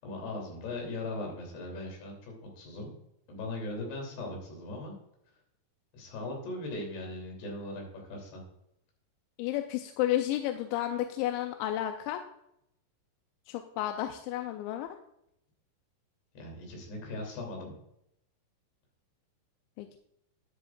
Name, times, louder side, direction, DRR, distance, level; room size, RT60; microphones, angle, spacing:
voice 1, 0.0-2.9 3.3-4.9 5.9-8.4 16.3-17.7, left 2 dB, 65° left, 0 dB, 5.0 m, -39 dB
voice 2, 9.4-12.2 13.5-15.0 19.8-20.0, left 13 dB, 85° left, 6 dB, 2.9 m, -32 dB
13.0 x 9.9 x 2.4 m, 0.79 s
omnidirectional pair, 5.3 m